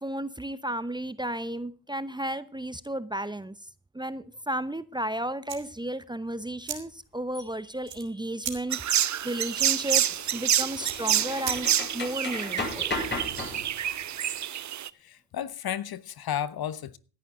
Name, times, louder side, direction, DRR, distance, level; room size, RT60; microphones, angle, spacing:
voice 1, 0.0-3.5 3.9-8.9 9.2-13.0, right 1 dB, 10° right, 0.9 m, -33 dB
sound 1, 5.4-12.1, right 10 dB, 65° right, 3.1 m, -42 dB
sound 2, 7.3-7.4 9.8-13.9, left 2 dB, 25° left, 6.8 m, -35 dB
sound 3, 8.7-14.9, right 10 dB, 40° right, 0.7 m, -28 dB
voice 2, 15.0-17.0, left 10 dB, 50° left, 1.1 m, -33 dB
16.5 x 11.0 x 3.8 m
hypercardioid pair, 55°, 47 cm